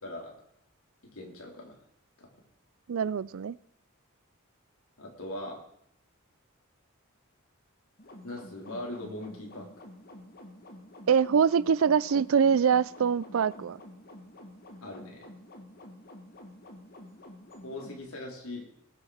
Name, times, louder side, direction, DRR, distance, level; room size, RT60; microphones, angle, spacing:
voice 1, 0.0-0.3 1.1-1.8 2.2-2.3 5.0-5.6 8.2-9.7 14.8-15.3 17.6-18.7, left 1 dB, 75° left, 3.6 m, -40 dB
voice 2, 2.9-3.6 11.1-13.8, right 7 dB, 70° right, 0.4 m, -24 dB
sound 1, 8.0-18.0, left 1 dB, 45° left, 1.9 m, -49 dB
19.5 x 7.4 x 4.9 m
head